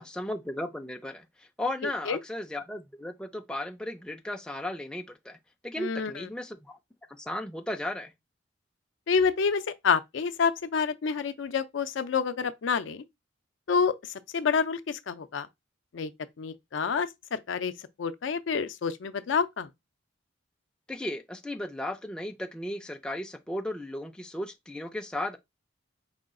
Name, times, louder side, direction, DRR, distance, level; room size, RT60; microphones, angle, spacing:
voice 1, 0.0-5.4 5.6-6.8 7.1-8.1 20.9-25.4, left 1 dB, 5° left, 0.4 m, -35 dB
voice 2, 5.8-6.1 9.1-13.0 13.7-15.5 15.9-16.1 16.4-17.7 18.0-19.7, left 5 dB, 70° left, 0.4 m, -28 dB
4.9 x 2.3 x 3.7 m
head